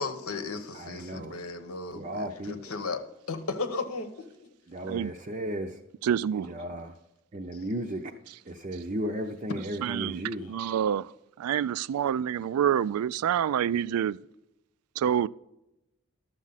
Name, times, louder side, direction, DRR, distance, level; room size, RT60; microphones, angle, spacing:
voice 1, 0.0-3.0 3.3-4.5, left 3 dB, 85° left, 1.1 m, -35 dB
voice 2, 0.7-1.3 1.9-2.8 4.7-5.8 6.3-6.9 7.3-8.1 8.5-10.5, equal, 30° right, 0.5 m, -35 dB
voice 3, 6.0-6.5 9.8-10.2 10.5-11.1 11.4-14.2 15.0-15.3, right 9 dB, 85° right, 0.3 m, -27 dB
12.0 x 7.4 x 4.0 m
head